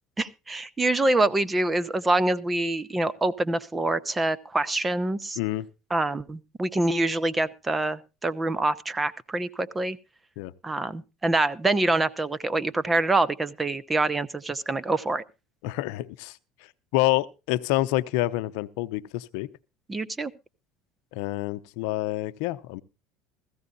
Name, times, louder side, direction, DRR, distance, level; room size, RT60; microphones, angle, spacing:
voice 1, 0.2-5.4 5.9-10.0 10.6-15.2 19.9-20.3, right 2 dB, 15° right, 0.9 m, -25 dB
voice 2, 5.4-5.7 10.4-10.5 15.6-16.4 16.9-19.5 21.1-22.8, left 17 dB, 75° left, 0.7 m, -27 dB
16.5 x 15.0 x 2.6 m
supercardioid pair, 115°, 0 cm